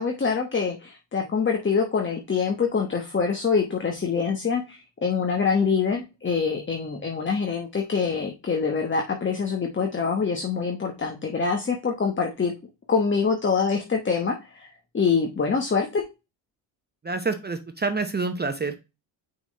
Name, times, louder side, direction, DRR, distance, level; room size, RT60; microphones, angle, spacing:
voice 1, 0.0-12.5 12.9-14.7 14.9-16.0, left 5 dB, 25° left, 3 dB, 1.1 m, -25 dB
voice 2, 17.0-18.9, right 3 dB, 20° right, 8 dB, 0.8 m, -28 dB
5.8 x 4.1 x 4.1 m, 0.27 s
supercardioid pair, 80°, 48 cm